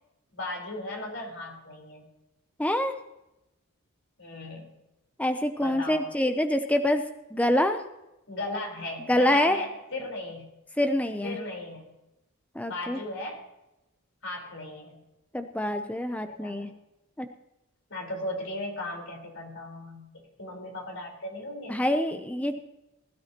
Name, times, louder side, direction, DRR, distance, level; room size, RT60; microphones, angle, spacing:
voice 1, 0.3-2.1 4.2-4.7 5.6-6.1 8.3-10.4 11.2-11.9 12.7-13.4 14.2-15.0 16.4-16.7 17.9-20.1 20.4-21.7, left 1 dB, 55° left, 1 dB, 4.4 m, -36 dB
voice 2, 2.6-2.9 5.2-7.8 9.1-9.6 10.8-11.4 12.5-13.0 15.3-16.7 17.2-17.3 21.7-22.6, left 1 dB, 5° left, 7 dB, 0.6 m, -26 dB
20.5 x 12.5 x 3.0 m, 0.93 s
head